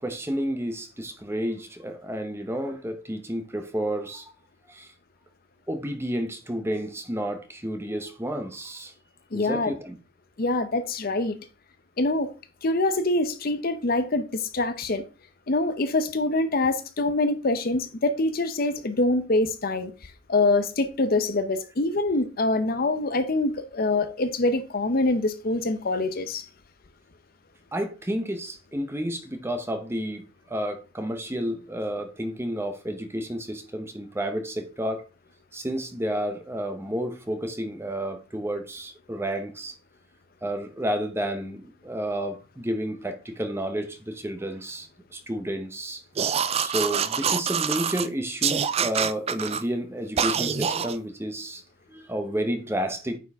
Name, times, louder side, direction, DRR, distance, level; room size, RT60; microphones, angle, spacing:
voice 1, 0.0-4.3 4.7-4.9 5.7-8.9 9.3-10.0 27.7-35.0 35.5-39.7 40.4-46.0 46.6-51.6 51.9-53.2, equal, 15° right, 0.9 m, -31 dB
voice 2, 9.3-9.7 10.4-11.4 12.0-12.3 12.6-15.0 15.5-19.9 20.3-26.4, left 2 dB, 50° left, 0.7 m, -25 dB
sound 1, 46.2-48.1 48.4-49.6 50.2-51.0, right 7 dB, 30° right, 0.4 m, -25 dB
9.1 x 4.6 x 3.5 m
head